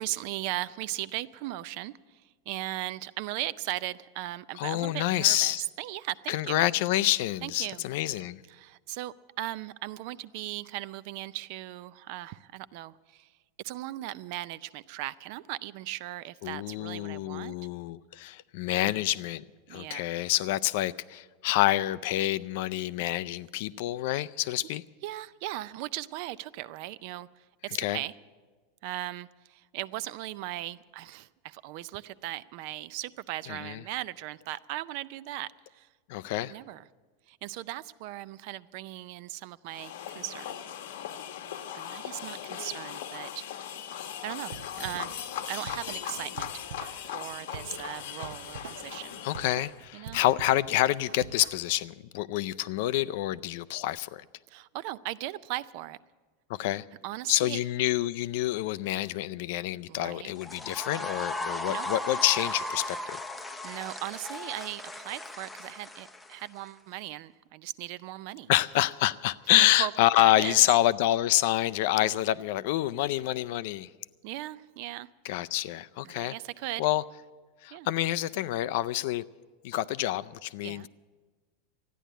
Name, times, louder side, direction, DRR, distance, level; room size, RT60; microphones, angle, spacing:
voice 1, 0.0-6.7 7.4-7.8 8.5-13.3 13.6-17.5 18.8-19.1 19.7-20.0 25.0-28.1 28.8-35.9 36.5-36.8 37.3-40.6 41.7-43.4 44.2-46.5 47.1-49.2 49.9-50.2 54.5-56.0 57.0-57.6 59.9-60.3 61.4-61.9 63.6-68.5 69.6-69.9 70.2-70.6 72.0-72.2 74.2-75.1 76.0-76.9 77.7-77.9 80.6-80.9, right 15 dB, 50° right, 0.4 m, -38 dB
voice 2, 4.5-5.7 6.3-8.4 16.4-19.4 19.7-24.8 27.7-28.0 33.5-33.8 36.1-36.5 49.2-54.2 56.5-56.8 57.3-63.2 68.5-73.9 75.2-76.3 76.8-77.0 77.6-79.2 79.6-80.9, left 15 dB, 55° left, 0.4 m, -27 dB
sound 1, 39.7-49.8, left 10 dB, 80° left, 1.0 m, -39 dB
Drum kit / Drum, 44.5-51.8, right 7 dB, 85° right, 0.7 m, -46 dB
sound 2, 60.4-66.7, left 2 dB, 5° left, 0.6 m, -36 dB
13.5 x 10.0 x 9.2 m
supercardioid pair, 165°, 0 cm